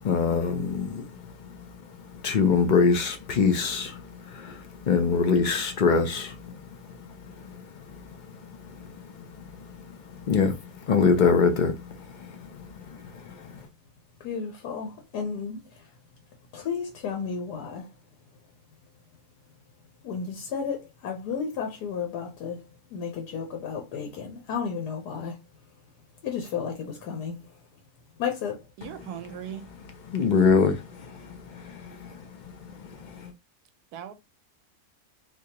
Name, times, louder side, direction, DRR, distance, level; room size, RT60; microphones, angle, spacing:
voice 1, 0.0-13.7 28.8-33.3, left 5 dB, 70° left, 0.4 m, -26 dB
voice 2, 14.2-15.6 16.5-17.9 20.0-22.6 22.9-25.4 26.2-27.5 28.2-28.6, left 6 dB, 90° left, 1.4 m, -32 dB
voice 3, 28.8-29.7 33.9-34.1, right 9 dB, 80° right, 1.1 m, -38 dB
3.7 x 2.9 x 2.8 m
omnidirectional pair, 1.7 m